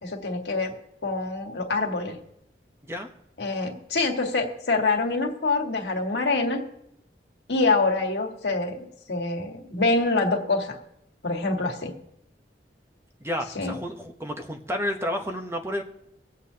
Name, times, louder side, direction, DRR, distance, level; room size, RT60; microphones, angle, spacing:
voice 1, 0.0-0.7 1.0-2.2 3.4-6.6 7.5-10.8 11.2-11.9 13.6-13.7, left 3 dB, 80° left, 2 dB, 1.7 m, -25 dB
voice 2, 13.2-15.8, equal, 15° right, 4 dB, 0.9 m, -31 dB
24.5 x 8.2 x 2.8 m, 0.79 s
head